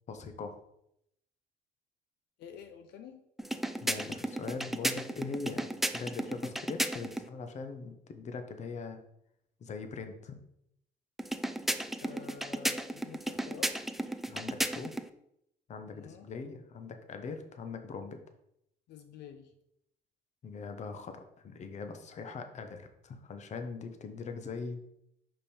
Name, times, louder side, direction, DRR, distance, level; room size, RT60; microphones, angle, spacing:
voice 1, 0.1-0.5 3.8-5.7 5.9-9.0 9.6-10.3 14.3-14.9 15.7-18.2 20.4-24.8, left 4 dB, 45° left, 7 dB, 0.9 m, -41 dB
voice 2, 2.4-3.2 12.0-13.7 15.9-16.2 18.9-19.5, left 8 dB, 75° left, 7 dB, 0.7 m, -49 dB
sound 1, 3.4-7.3 11.2-15.1, right 1 dB, ahead, 0.3 m, -34 dB
5.4 x 5.2 x 4.3 m, 0.78 s
cardioid pair, 110°, 17 cm